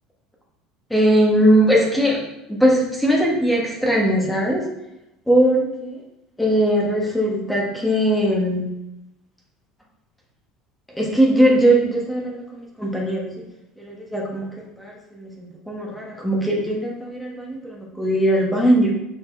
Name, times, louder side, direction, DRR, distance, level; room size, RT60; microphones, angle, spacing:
voice 1, 0.9-2.2 2.5-4.6 5.3-6.0 6.4-8.7 11.0-13.3 13.8-14.5 14.8-18.9, right 1 dB, 5° left, -3 dB, 1.3 m, -20 dB
6.9 x 5.9 x 3.3 m, 0.90 s
cardioid pair, 175°, 0 cm